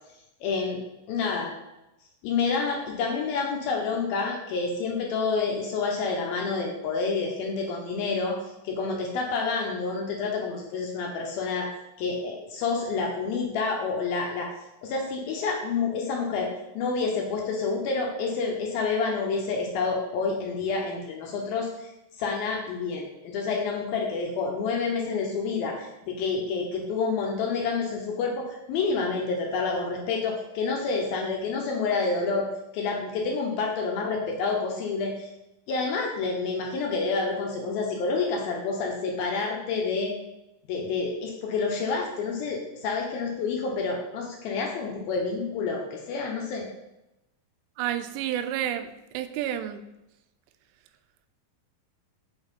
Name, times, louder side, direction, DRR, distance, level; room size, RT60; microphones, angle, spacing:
voice 1, 0.4-0.8 1.1-1.5 2.2-8.4 8.6-11.7 12.0-14.5 14.8-21.9 22.2-35.3 35.7-40.1 40.7-46.7, left 4 dB, 75° left, 0 dB, 2.3 m, -28 dB
voice 2, 47.8-48.9 49.1-49.8, right 11 dB, 85° right, 9 dB, 2.7 m, -29 dB
8.0 x 3.9 x 5.3 m, 0.92 s
omnidirectional pair, 5.0 m